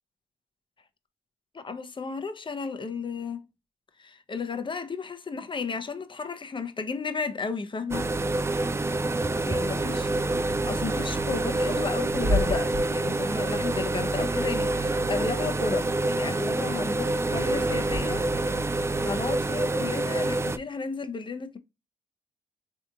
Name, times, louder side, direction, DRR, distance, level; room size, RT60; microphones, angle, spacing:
voice 1, 1.5-3.5 4.0-8.1 9.4-10.1 10.6-18.2 19.0-21.6, left 4 dB, 30° left, 0.6 m, -33 dB
sound 1, 7.9-20.6, right 2 dB, 15° right, 0.3 m, -27 dB
Bird / Wind, 11.9-18.5, left 1 dB, 35° right, 0.9 m, -35 dB
3.4 x 2.8 x 2.3 m
supercardioid pair, 55°, 16 cm